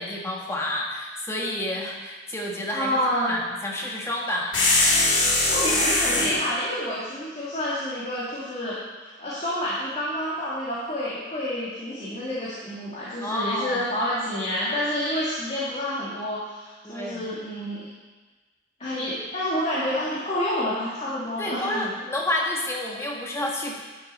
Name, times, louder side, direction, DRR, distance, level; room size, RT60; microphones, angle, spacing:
voice 1, 0.0-3.0 3.3-4.6 13.2-13.8 16.8-17.2 21.4-23.8, left 1 dB, 15° left, -2 dB, 1.4 m, -29 dB
voice 2, 2.7-3.4 5.5-17.9 18.8-21.9, equal, 35° left, -9 dB, 2.0 m, -28 dB
sound 1, 4.5-6.4, left 2 dB, 75° left, 2.3 m, -21 dB
11.0 x 6.5 x 4.3 m, 1.3 s
head